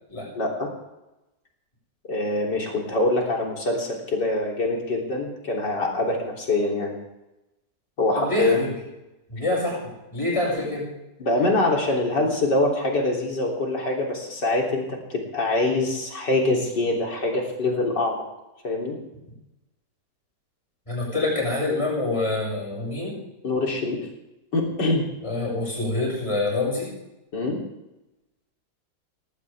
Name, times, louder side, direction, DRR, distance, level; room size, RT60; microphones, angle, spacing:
voice 1, 0.4-0.7 2.1-7.0 8.0-8.6 11.2-18.2 18.6-19.0 23.4-24.0 24.5-25.0 27.3-27.6, left 2 dB, 75° left, -1 dB, 4.1 m, -24 dB
voice 2, 8.1-8.7 9.3-9.8 10.1-10.9 20.9-23.2 25.2-26.9, left 2 dB, 15° left, -4 dB, 7.4 m, -26 dB
19.5 x 18.0 x 3.6 m, 0.95 s
omnidirectional pair, 1.9 m